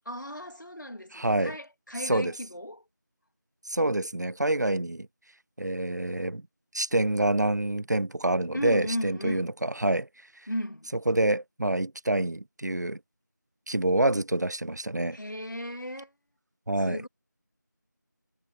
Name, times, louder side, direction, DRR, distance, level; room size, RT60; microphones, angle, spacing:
voice 1, 0.1-2.8 8.5-9.5 10.5-10.9 15.1-16.1 16.8-17.1, left 1 dB, 75° left, 3.2 m, -35 dB
voice 2, 1.1-1.6 2.0-2.3 3.7-5.1 5.6-6.4 6.7-10.1 11.1-13.0 13.7-15.2 16.7-17.0, right 1 dB, 65° right, 0.6 m, -27 dB
figure-of-eight pair, 175°, 10 cm